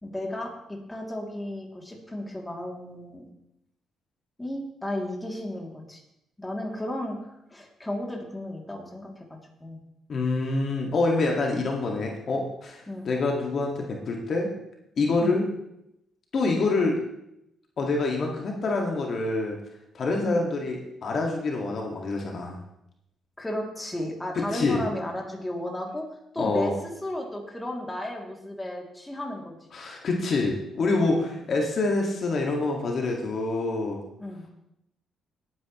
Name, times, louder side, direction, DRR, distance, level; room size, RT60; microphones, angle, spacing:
voice 1, 0.0-3.2 4.4-6.0 6.4-7.2 7.5-9.8 12.9-13.1 15.2-15.4 20.2-20.4 23.4-26.1 26.3-29.7 31.2-31.4 34.2-34.4, left 1 dB, 10° left, 0 dB, 2.7 m, -34 dB
voice 2, 10.1-14.5 15.0-15.5 16.3-17.0 17.8-19.6 19.9-22.6 24.5-24.8 26.4-26.7 29.7-34.0, left 3 dB, 55° left, 0 dB, 1.9 m, -26 dB
18.0 x 9.6 x 3.1 m, 0.82 s
cardioid pair, 90°, 0 cm